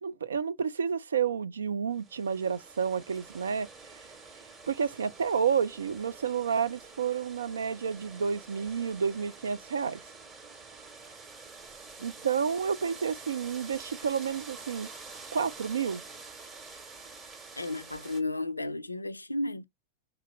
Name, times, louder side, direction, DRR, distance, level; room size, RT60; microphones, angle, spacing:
voice 1, 0.0-3.7 4.7-10.0 12.0-14.9 15.3-16.0, right 6 dB, 70° right, 0.4 m, -30 dB
sound 1, 1.9-18.2, right 4 dB, 25° right, 1.6 m, -48 dB
voice 2, 17.6-19.6, left 2 dB, 85° left, 0.3 m, -33 dB
3.9 x 2.9 x 4.5 m
figure-of-eight pair, 90°, 0 cm